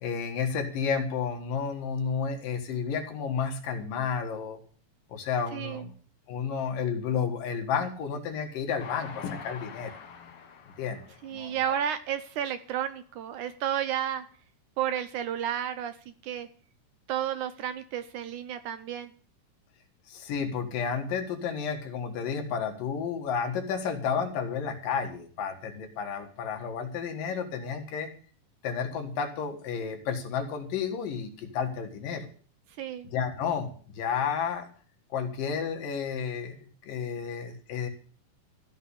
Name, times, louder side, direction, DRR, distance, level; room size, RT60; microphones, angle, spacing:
voice 1, 0.0-4.6 5.1-5.9 6.3-10.0 10.8-11.0 11.3-11.8 20.1-28.1 28.6-32.3 33.1-34.7 35.1-37.9, left 6 dB, 75° left, 4 dB, 3.3 m, -31 dB
voice 2, 5.5-5.8 11.2-14.2 14.8-16.0 16.2-16.5 17.1-19.1 32.8-33.1, right 10 dB, 70° right, 11 dB, 2.0 m, -32 dB
Train, 8.8-12.2 12.8-12.9 13.1-13.2, left 7 dB, 50° left, 2.0 m, -46 dB
15.0 x 5.7 x 10.0 m, 0.43 s
omnidirectional pair, 4.0 m